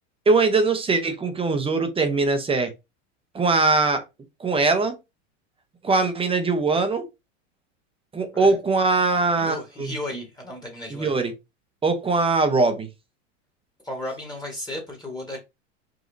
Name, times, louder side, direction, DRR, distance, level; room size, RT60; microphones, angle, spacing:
voice 1, 0.3-2.7 3.3-4.0 4.4-4.9 5.8-7.0 8.1-9.9 10.9-11.3 11.8-12.9, right 3 dB, 15° right, 0.6 m, -21 dB
voice 2, 9.4-11.2 13.8-15.4, left 1 dB, 10° left, 1.2 m, -34 dB
5.1 x 2.8 x 2.6 m
supercardioid pair, 115°, 39 cm